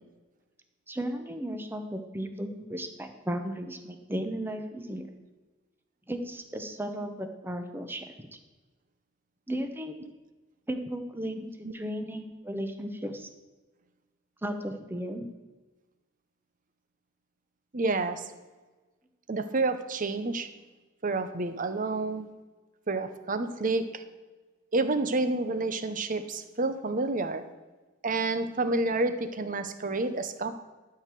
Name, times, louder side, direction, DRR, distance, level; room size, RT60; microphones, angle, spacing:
voice 1, 0.9-5.1 6.1-8.4 9.5-9.9 10.7-13.3 14.4-15.3, equal, 10° right, 6 dB, 0.9 m, -35 dB
voice 2, 17.7-18.3 19.3-20.5 21.0-22.3 22.9-24.0 24.7-27.4 28.0-30.5, right 3 dB, 40° right, 10 dB, 0.8 m, -29 dB
12.5 x 4.8 x 7.6 m, 1.2 s
head